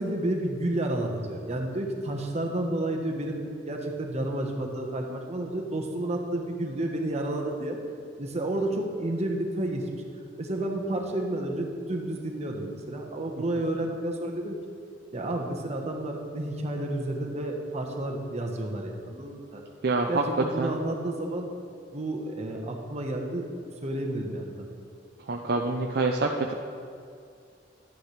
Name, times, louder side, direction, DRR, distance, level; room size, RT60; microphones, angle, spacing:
voice 1, 0.0-7.8 8.2-10.0 10.4-14.6 15.1-19.6 20.1-21.5 21.9-23.5 23.8-24.7, right 1 dB, 35° right, 2 dB, 1.1 m, -31 dB
voice 2, 19.8-20.2 20.6-20.7 25.3-26.5, right 3 dB, 60° right, 1 dB, 0.6 m, -26 dB
12.0 x 9.3 x 3.3 m, 2.3 s
head